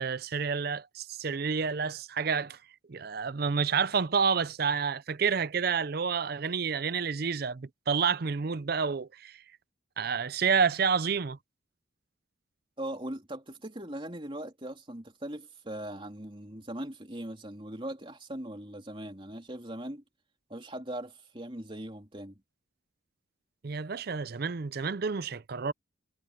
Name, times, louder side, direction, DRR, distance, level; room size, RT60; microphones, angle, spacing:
voice 1, 0.0-2.6 2.9-9.4 10.0-11.4 23.6-25.7, right 5 dB, 50° right, 0.5 m, -29 dB
voice 2, 12.8-20.0 20.5-22.4, right 1 dB, 25° right, 3.3 m, -40 dB
head